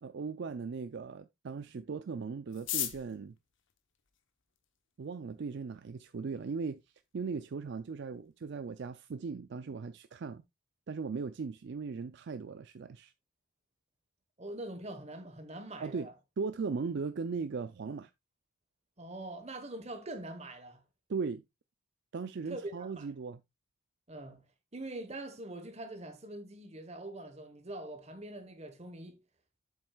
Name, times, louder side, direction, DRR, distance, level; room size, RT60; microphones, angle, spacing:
voice 1, 0.0-3.4 5.0-6.8 7.1-10.4 10.9-13.1 15.8-16.1 16.4-18.1 21.1-21.4 22.1-23.4, right 5 dB, 55° right, 0.4 m, -38 dB
sound 1, 2.5-4.8 5.6-5.7 5.9-6.0 6.2-6.7 7.0-7.1 7.3-7.7 8.1-8.3 8.6-8.9, left 12 dB, 60° left, 0.9 m, -39 dB
voice 2, 14.4-16.1 19.0-20.8 22.4-23.1 24.1-24.4 24.7-29.2, right 1 dB, 30° right, 1.2 m, -43 dB
7.8 x 7.5 x 2.3 m
head